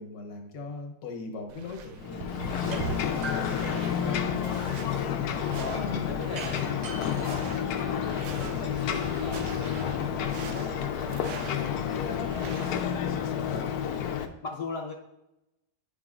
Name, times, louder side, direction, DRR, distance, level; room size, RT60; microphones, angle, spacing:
voice 1, 0.0-4.4 13.4-13.7, left 3 dB, 85° left, 2 dB, 1.7 m, -40 dB
sound 1, 1.5-13.0, right 6 dB, 75° right, 0.6 m, -43 dB
Ocean, 2.0-14.3, left 8 dB, 70° left, 1.0 m, -30 dB
sound 2, 2.7-2.8 3.2-4.4 6.3-8.3, right 4 dB, 55° right, 1.2 m, -42 dB
voice 2, 5.2-10.9 11.3-13.9 14.4-14.9, left 3 dB, 50° left, -1 dB, 0.9 m, -41 dB
10.0 x 4.9 x 2.4 m, 0.88 s
omnidirectional pair, 1.8 m